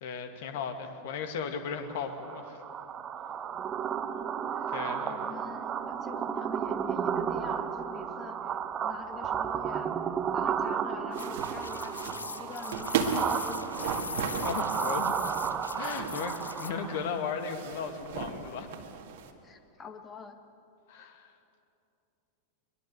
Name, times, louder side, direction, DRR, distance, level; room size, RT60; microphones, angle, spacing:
voice 1, 0.0-2.6 4.7-5.2 14.4-15.1 15.7-18.7 20.9-21.3, left 6 dB, 55° left, 6 dB, 2.2 m, -36 dB
sound 1, 1.9-17.2, right 8 dB, 25° right, 1.2 m, -33 dB
voice 2, 3.9-4.7 5.0-8.5 8.8-9.9 10.3-14.0 16.4-16.5 19.4-20.4 20.9-21.1, left 5 dB, 20° left, 7 dB, 1.7 m, -46 dB
sound 2, 11.1-16.7, left 4 dB, 75° left, 0.8 m, -40 dB
sound 3, 11.1-19.3, right 6 dB, 55° right, 1.9 m, -36 dB
23.0 x 22.0 x 8.2 m, 2.7 s
figure-of-eight pair, 90°, 0 cm